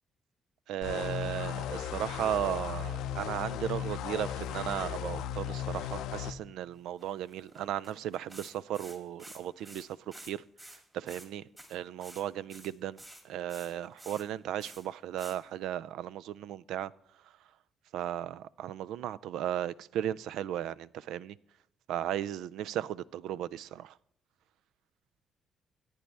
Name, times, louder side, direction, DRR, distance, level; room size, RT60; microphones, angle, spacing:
voice 1, 0.7-9.9 10.2-10.4 10.9-11.4 11.7-16.9 17.9-21.4 21.9-23.9, right 11 dB, 85° right, 0.3 m, -35 dB
sound 1, 0.8-6.3, left 10 dB, 90° left, 0.5 m, -36 dB
sound 2, 4.3-4.5 4.8-4.9 5.2-5.4 6.0-6.6 7.0-10.3 10.6-11.3 11.6-12.2 12.5-14.2 14.6-14.9 15.2-15.4, right 1 dB, 20° right, 2.4 m, -51 dB
14.5 x 9.3 x 3.3 m
cardioid pair, 90°, 0 cm